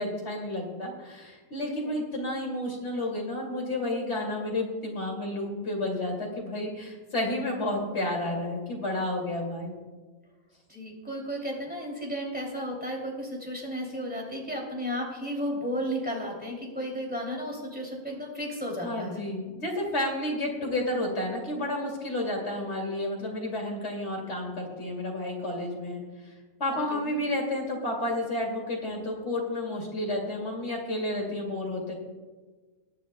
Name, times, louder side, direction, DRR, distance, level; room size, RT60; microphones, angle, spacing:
voice 1, 0.0-9.7 18.8-26.3 26.6-31.9, left 1 dB, 50° left, -1 dB, 2.8 m, -31 dB
voice 2, 1.6-2.0 10.7-19.2 26.9-27.1, equal, 5° right, -2 dB, 2.8 m, -34 dB
22.0 x 10.0 x 2.2 m, 1.3 s
omnidirectional pair, 1.5 m